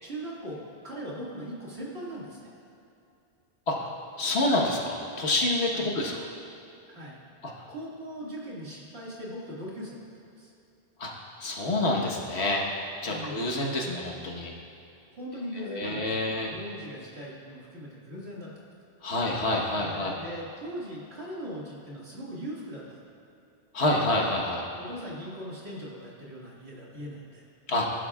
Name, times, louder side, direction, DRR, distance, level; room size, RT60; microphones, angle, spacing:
voice 1, 0.0-2.4 5.7-5.9 6.9-7.2 7.7-10.0 10.4-10.5 13.1-13.4 15.1-18.6 19.7-23.0 24.8-27.4, equal, 75° right, -5 dB, 2.4 m, -40 dB
voice 2, 4.2-6.1 11.0-11.1 11.4-12.6 13.0-14.5 15.7-16.5 19.0-20.1 23.7-24.6 27.7-27.9, left 2 dB, 90° left, -1 dB, 1.6 m, -27 dB
17.0 x 11.0 x 2.4 m, 2.7 s
omnidirectional pair, 1.1 m